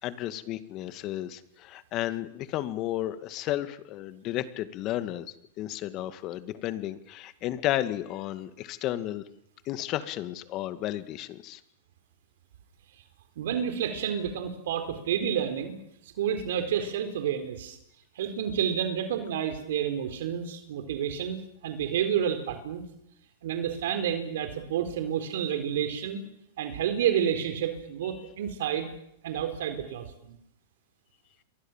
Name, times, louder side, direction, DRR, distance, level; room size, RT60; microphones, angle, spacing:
voice 1, 0.0-9.2 9.7-11.6, left 14 dB, 40° left, 12 dB, 2.1 m, -33 dB
voice 2, 13.4-15.8 16.0-17.8 18.2-21.4 21.6-22.8 23.4-26.2 26.6-28.9 29.2-30.4, right 9 dB, 75° right, 8 dB, 4.2 m, -30 dB
28.5 x 23.0 x 7.5 m, 0.77 s
hypercardioid pair, 125°, 0 cm